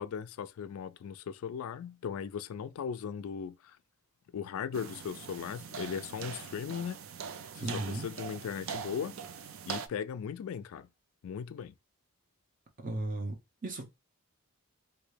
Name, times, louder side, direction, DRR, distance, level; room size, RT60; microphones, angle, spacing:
voice 1, 0.0-3.8 4.3-7.0 7.5-9.2 9.7-10.9 11.2-11.7, left 7 dB, 75° left, 0.3 m, -38 dB
sound 1, 4.7-9.9, right 7 dB, 65° right, 0.4 m, -42 dB
voice 2, 7.6-8.1 12.8-13.4 13.6-13.8, right 2 dB, 40° right, 0.8 m, -35 dB
3.0 x 2.6 x 3.2 m
head